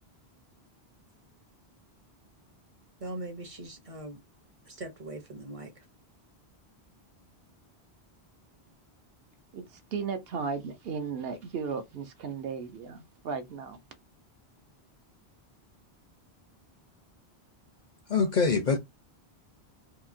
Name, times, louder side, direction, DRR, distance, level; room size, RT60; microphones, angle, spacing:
voice 1, 3.0-4.2 4.7-5.8, right 2 dB, 40° right, 0.6 m, -41 dB
voice 2, 9.5-13.8, right 5 dB, 70° right, 0.8 m, -35 dB
voice 3, 18.1-18.8, left 5 dB, 55° left, 0.5 m, -24 dB
2.8 x 2.6 x 2.5 m
omnidirectional pair, 1.1 m